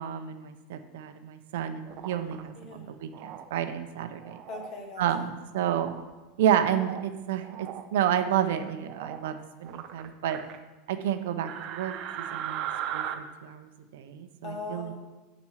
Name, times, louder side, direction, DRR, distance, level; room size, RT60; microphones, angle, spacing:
voice 1, 0.0-4.4 5.0-5.9 6.4-10.4 10.9-12.7 12.9-14.9, right 10 dB, 80° right, 9 dB, 0.8 m, -30 dB
sound 1, 1.8-2.4 3.1-3.5 4.2-4.7 5.6-6.0 6.5-7.1 7.4-7.8 8.8-9.3 9.6-10.6 11.5-13.1, right 10 dB, 40° right, 0.6 m, -37 dB
voice 2, 2.5-2.9 4.5-5.3 14.4-14.9, left 3 dB, 30° left, 2 dB, 1.5 m, -40 dB
7.2 x 5.2 x 6.4 m, 1.2 s
supercardioid pair, 165°, 0 cm